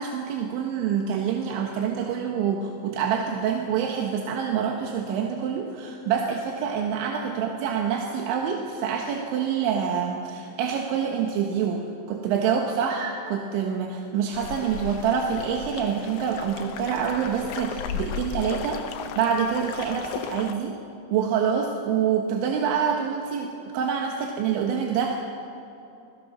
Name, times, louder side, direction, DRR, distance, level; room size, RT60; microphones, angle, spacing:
voice 1, 0.0-11.8 12.1-20.7 21.1-25.1, right 7 dB, 85° right, 1 dB, 3.7 m, -26 dB
sound 1, 14.3-20.5, left 9 dB, 75° left, 2.6 m, -35 dB
27.0 x 18.5 x 6.1 m, 2.8 s
omnidirectional pair, 5.1 m